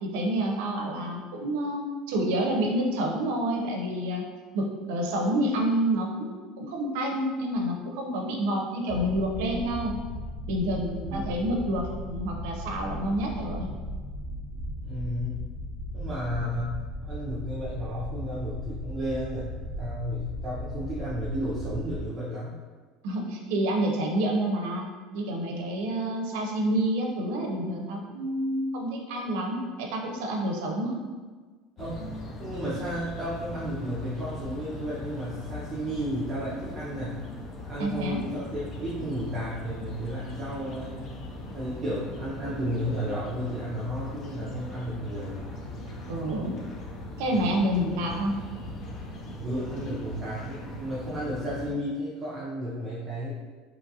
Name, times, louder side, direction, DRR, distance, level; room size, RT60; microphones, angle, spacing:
voice 1, 0.0-4.2 4.5-6.3 6.6-10.0 10.5-13.7 23.0-24.9 25.1-31.0 37.8-38.2 46.1-46.5 47.2-48.3, right 1 dB, 80° right, 1 dB, 0.5 m, -28 dB
sound 1, 8.9-22.1, equal, 40° right, 1.0 m, -37 dB
voice 2, 14.8-15.4 15.9-22.6 31.8-32.0 32.4-37.3 37.6-41.0 41.5-45.4 49.4-53.3, equal, 25° right, -9 dB, 0.5 m, -33 dB
sound 2, 31.8-51.7, left 1 dB, 30° left, 0.4 m, -39 dB
3.0 x 2.4 x 2.7 m, 1.4 s
cardioid pair, 150°, 0 cm